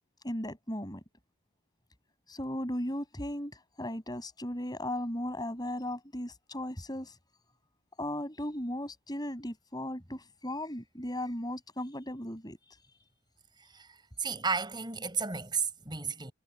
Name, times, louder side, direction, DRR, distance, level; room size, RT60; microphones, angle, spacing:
voice 1, 0.2-1.0 2.3-7.1 8.0-12.6, left 1 dB, 20° left, 6.2 m, -36 dB
voice 2, 13.7-16.3, right 5 dB, 20° right, 5.6 m, -33 dB
head